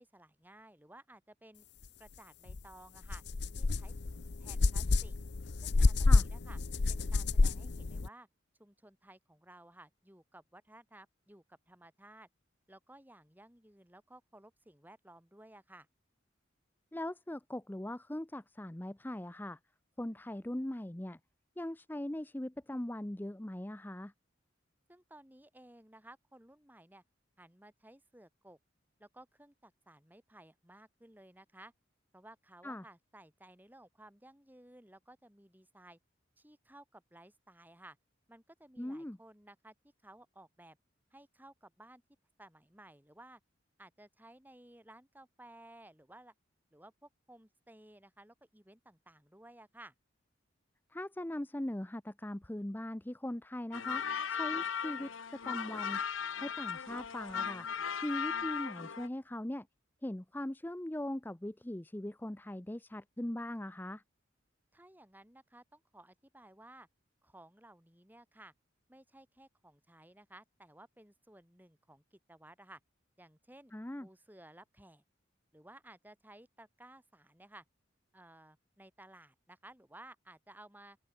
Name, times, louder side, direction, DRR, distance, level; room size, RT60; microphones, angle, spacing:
voice 1, 0.0-1.6 2.0-3.2 3.5-3.9 4.4-5.2 5.6-6.6 6.9-8.3 8.6-12.3 12.7-15.9 24.9-27.0 27.4-28.6 29.0-31.7 32.1-36.0 36.4-38.0 38.3-39.7 40.0-40.8 41.1-42.0 42.4-43.4 43.8-46.3 46.7-49.9 64.7-66.9 67.2-68.5 68.9-72.8 73.2-73.7 74.0-75.0 75.5-77.7 78.1-81.0, right 1 dB, 10° right, 4.3 m, -57 dB
sound 1, 2.5-2.6 3.0-8.1, left 3 dB, 60° left, 0.7 m, -29 dB
voice 2, 16.9-19.6 20.0-21.2 21.6-24.1 32.6-32.8 38.8-39.2 50.9-54.0 54.3-55.1 55.4-56.0 56.4-57.7 58.0-59.7 60.0-64.0 73.7-74.1, left 1 dB, 10° left, 0.6 m, -40 dB
sound 2, 53.7-59.1, left 7 dB, 90° left, 0.9 m, -37 dB
open air
head